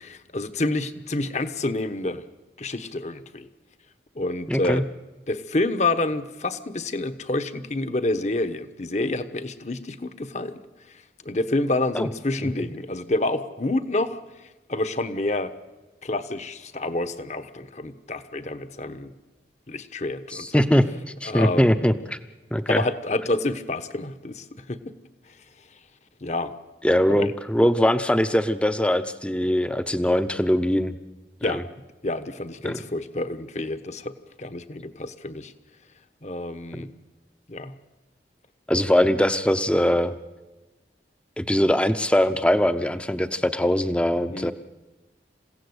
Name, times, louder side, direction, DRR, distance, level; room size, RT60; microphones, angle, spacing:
voice 1, 0.0-2.2 2.6-3.5 4.1-4.9 5.3-10.6 11.2-14.2 14.7-15.5 16.0-19.1 19.7-20.6 21.2-21.7 22.7-24.8 26.2-26.5 27.1-27.3 31.4-31.6 32.0-35.5 36.2-36.9 37.5-37.7 44.3-44.5, left 2 dB, 40° left, 10 dB, 1.2 m, -28 dB
voice 2, 4.5-4.8 11.9-12.1 12.6-12.7 20.3-20.8 21.2-22.2 22.5-22.8 26.8-30.9 31.4-31.6 32.6-32.8 36.7-36.8 38.7-40.2 41.4-44.5, equal, 5° left, 11 dB, 0.8 m, -21 dB
28.0 x 16.0 x 8.1 m, 1.2 s
head